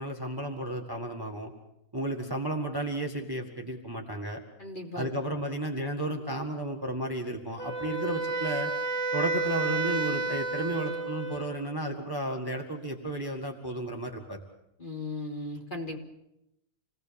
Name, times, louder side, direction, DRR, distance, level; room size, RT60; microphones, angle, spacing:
voice 1, 0.0-1.5 1.9-4.4 5.0-8.7 9.1-14.4, right 1 dB, 15° right, 2 dB, 1.7 m, -33 dB
voice 2, 4.6-5.1 14.8-16.0, left 2 dB, 30° left, 0 dB, 3.3 m, -37 dB
Wind instrument woodwind instrument, 7.6-11.6, right 3 dB, 5° left, 2.4 m, -31 dB
28.0 x 19.0 x 7.1 m, 0.85 s
omnidirectional pair, 1.8 m